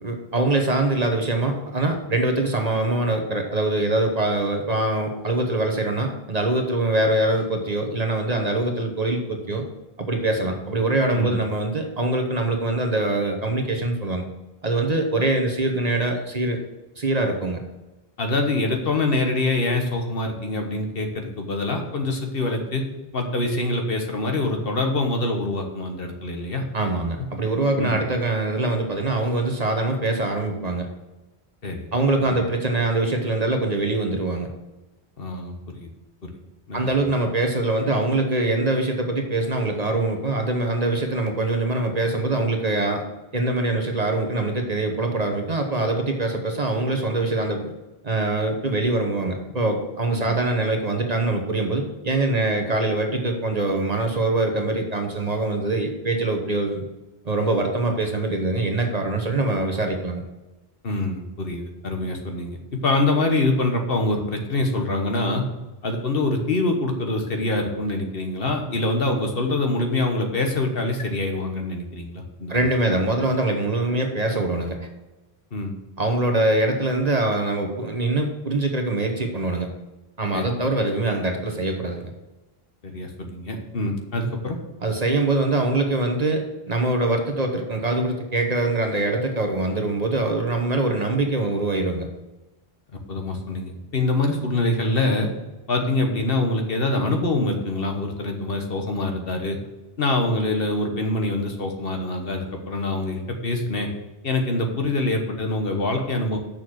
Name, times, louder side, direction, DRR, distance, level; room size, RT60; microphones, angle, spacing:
voice 1, 0.0-9.6 10.0-14.2 14.6-16.6 17.0-17.6 26.7-30.9 31.9-34.5 36.7-43.0 43.3-47.7 48.0-56.9 57.2-60.2 72.5-74.9 76.0-79.7 80.2-82.1 84.8-92.1, right 2 dB, 40° right, 4 dB, 1.1 m, -23 dB
voice 2, 18.2-22.8 23.1-27.0 27.8-28.0 31.6-31.9 32.2-32.3 35.2-35.9 36.2-36.3 36.7-36.9 50.1-50.3 60.8-65.4 65.8-72.6 75.5-75.7 80.3-80.4 82.8-84.6 93.1-95.3 95.7-99.6 100.0-103.9 104.2-106.4, left 2 dB, 65° left, 3 dB, 1.4 m, -25 dB
6.8 x 6.1 x 6.4 m, 1.1 s
omnidirectional pair, 1.1 m